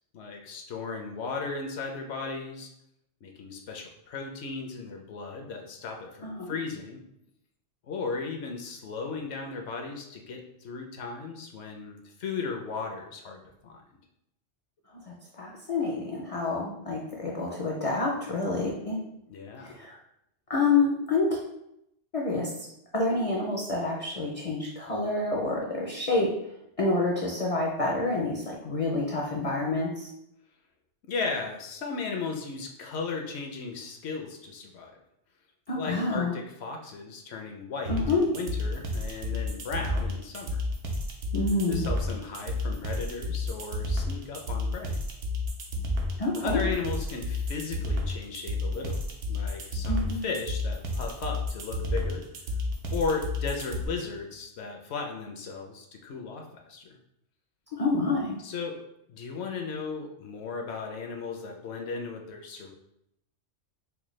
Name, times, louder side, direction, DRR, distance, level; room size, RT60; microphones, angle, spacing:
voice 1, 0.1-2.7 3.2-7.0 7.9-13.8 19.3-19.8 31.0-34.9 35.7-40.6 41.7-45.0 46.4-49.0 49.3-52.2 52.9-57.0 58.4-58.8 59.1-62.7, left 4 dB, 70° left, 3 dB, 0.8 m, -36 dB
voice 2, 6.2-6.6 15.1-19.0 19.6-20.0 20.5-21.4 22.1-22.5 22.9-26.3 26.8-30.1 35.7-36.3 37.9-38.2 41.3-41.9 46.2-46.6 49.9-50.2 57.8-58.4, left 3 dB, 50° left, -2 dB, 0.4 m, -28 dB
sound 1, 37.8-53.8, left 2 dB, 75° right, 1.0 m, -31 dB
4.4 x 2.2 x 3.1 m, 0.80 s
omnidirectional pair, 1.2 m